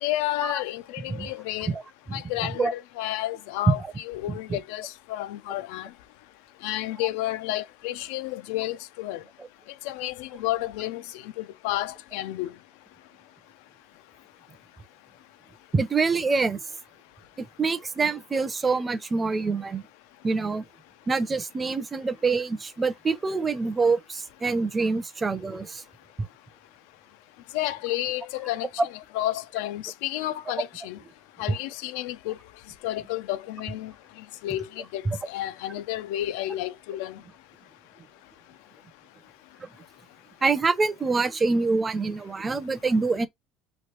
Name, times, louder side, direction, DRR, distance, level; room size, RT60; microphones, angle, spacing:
voice 1, 0.0-1.7 2.1-5.9 6.6-9.2 9.8-12.5 27.5-28.7 29.1-31.0 31.4-32.4 32.8-33.9 34.4-35.0 35.3-37.2, left 15 dB, 85° left, 0.3 m, -31 dB
voice 2, 4.3-4.6 15.7-16.6 17.4-19.8 20.2-20.6 21.1-25.8 35.1-35.2 39.6-39.7 40.4-43.3, right 4 dB, 20° right, 0.5 m, -25 dB
3.1 x 2.4 x 3.0 m
supercardioid pair, 120°, 0 cm